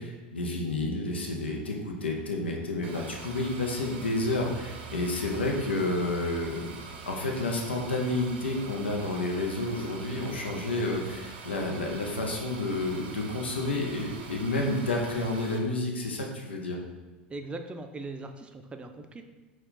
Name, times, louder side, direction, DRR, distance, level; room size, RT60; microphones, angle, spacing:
voice 1, 0.0-6.7 7.1-16.8, left 2 dB, 90° left, 1 dB, 0.5 m, -30 dB
sound 1, 2.8-15.6, right 5 dB, 75° right, 0.6 m, -44 dB
voice 2, 17.3-19.2, right 2 dB, 20° right, 7 dB, 0.4 m, -40 dB
4.3 x 2.3 x 3.8 m, 1.2 s
hypercardioid pair, 85°, 6 cm